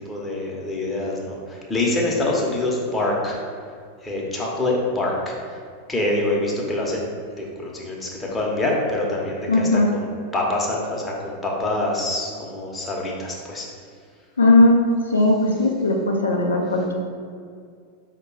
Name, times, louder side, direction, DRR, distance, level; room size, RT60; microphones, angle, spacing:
voice 1, 0.1-3.4 4.0-5.3 5.9-7.1 7.4-13.7, left 2 dB, 10° left, -3 dB, 0.9 m, -25 dB
voice 2, 9.5-9.9 14.4-14.8 15.1-16.9, left 2 dB, 75° left, 0 dB, 0.5 m, -17 dB
5.1 x 2.2 x 4.7 m, 2.2 s
figure-of-eight pair, 90°, 0 cm